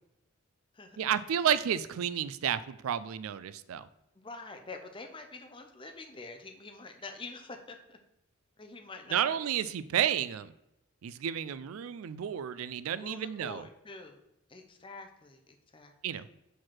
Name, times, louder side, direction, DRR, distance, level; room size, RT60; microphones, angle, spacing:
voice 1, 1.0-3.9 9.1-10.5 11.0-13.7 16.0-16.3, right 9 dB, 85° right, 15 dB, 0.4 m, -31 dB
voice 2, 4.1-8.0 8.6-9.5 12.9-14.2 14.5-15.9, left 3 dB, 25° left, 5 dB, 0.6 m, -46 dB
4.6 x 4.6 x 5.9 m, 0.83 s
head